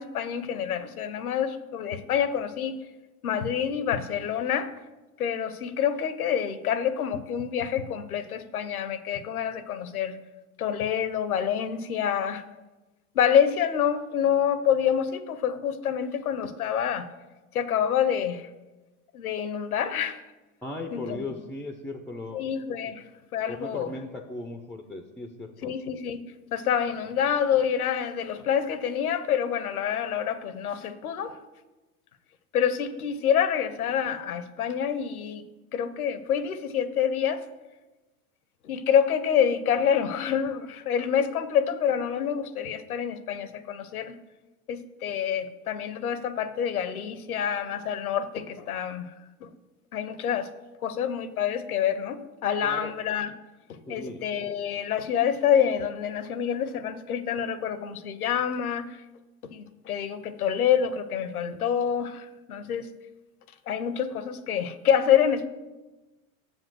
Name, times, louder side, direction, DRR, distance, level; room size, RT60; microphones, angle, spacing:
voice 1, 0.0-2.8 3.2-4.7 5.2-10.2 10.6-12.4 13.1-17.1 17.5-18.5 19.1-20.2 20.9-21.2 22.3-23.0 23.3-23.9 25.6-26.2 26.5-31.4 32.5-35.4 35.7-37.4 38.6-44.2 44.7-49.1 49.4-49.5 49.9-50.5 50.8-53.3 53.7-59.0 59.5-62.9 63.7-65.5, left 8 dB, 85° left, 14 dB, 0.7 m, -27 dB
voice 2, 20.6-22.5 23.5-25.7 52.6-52.9 53.9-54.3, left 2 dB, 5° left, 6 dB, 0.3 m, -37 dB
7.1 x 5.3 x 6.1 m, 1.1 s
hypercardioid pair, 90°, 43 cm